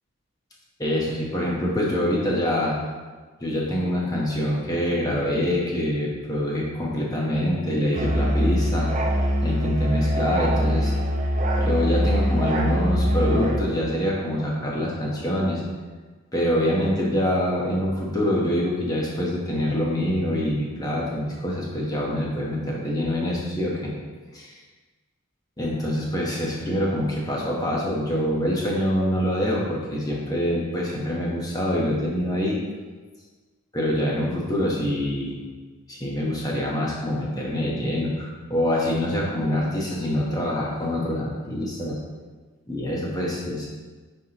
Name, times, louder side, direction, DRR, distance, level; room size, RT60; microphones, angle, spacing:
voice 1, 0.8-2.8 3.4-8.9 9.4-10.9 11.6-15.6 16.3-23.9 24.3-24.5 25.6-32.6 33.7-35.4 35.9-42.0 42.7-43.7, left 1 dB, 15° left, -4 dB, 1.0 m, -25 dB
Musical instrument, 7.9-13.7, equal, 35° right, 0.6 m, -23 dB
9.8 x 3.5 x 2.9 m, 1.4 s
head